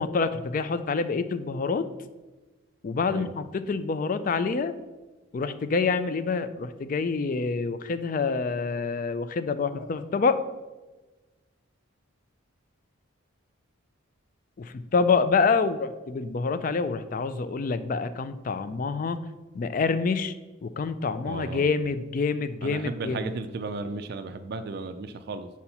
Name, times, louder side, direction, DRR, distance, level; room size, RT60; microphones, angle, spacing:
voice 1, 0.0-1.9 2.8-4.7 5.3-10.4 14.6-19.2 19.5-20.3 20.6-23.3, left 4 dB, 40° left, 12 dB, 0.3 m, -27 dB
voice 2, 21.3-21.8 22.6-25.5, right 3 dB, 50° right, 8 dB, 0.3 m, -35 dB
4.7 x 4.3 x 5.4 m, 1.2 s
head